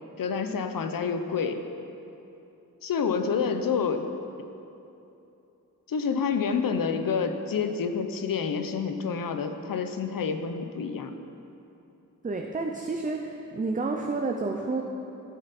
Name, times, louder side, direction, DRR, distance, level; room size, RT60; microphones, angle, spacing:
voice 1, 0.2-1.6 2.8-4.1 5.9-11.1, left 6 dB, 80° left, 7 dB, 0.8 m, -28 dB
voice 2, 12.2-14.8, right 3 dB, 25° right, 2 dB, 0.5 m, -30 dB
13.0 x 9.2 x 4.2 m, 2.8 s
wide cardioid pair, 165°, 33 cm